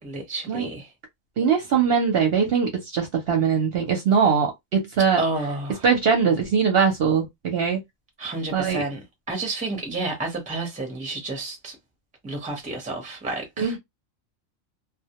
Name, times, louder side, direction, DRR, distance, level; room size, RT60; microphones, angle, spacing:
voice 1, 0.0-0.9 5.2-5.9 8.2-9.0 9.3-11.8 12.2-13.7, right 2 dB, 10° right, 0.6 m, -30 dB
voice 2, 1.4-5.2 5.8-7.8 8.5-8.8 13.6-13.8, right 6 dB, 60° right, 0.7 m, -21 dB
2.1 x 2.1 x 2.8 m
omnidirectional pair, 1.3 m